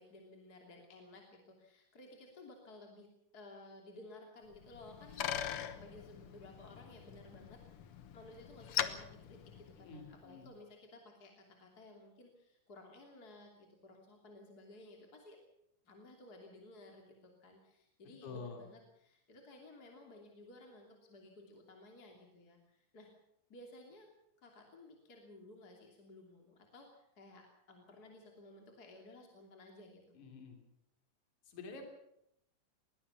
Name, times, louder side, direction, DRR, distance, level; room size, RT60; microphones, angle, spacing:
voice 1, 0.0-15.4 15.8-23.1 23.5-24.1 24.4-30.2, left 2 dB, 30° left, 2 dB, 3.0 m, -56 dB
Bicycle, 4.5-10.2, left 10 dB, 75° left, 1.3 m, -42 dB
voice 2, 9.8-10.5 18.2-18.6 30.1-30.6 31.5-31.9, left 4 dB, 55° left, 3 dB, 4.5 m, -48 dB
22.0 x 18.0 x 7.0 m, 0.77 s
omnidirectional pair, 4.2 m